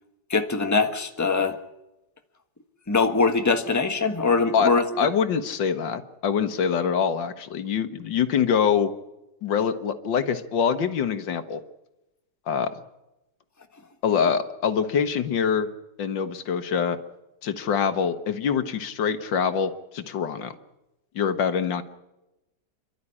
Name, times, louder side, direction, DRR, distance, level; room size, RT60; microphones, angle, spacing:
voice 1, 0.3-1.6 2.9-4.8, left 4 dB, 10° left, 5 dB, 1.4 m, -22 dB
voice 2, 5.0-8.9 9.4-11.6 12.5-12.7 14.0-15.7 16.0-17.0 17.4-20.5 21.2-21.8, left 7 dB, 85° left, 10 dB, 1.9 m, -24 dB
28.5 x 12.0 x 9.9 m, 0.97 s
omnidirectional pair, 2.0 m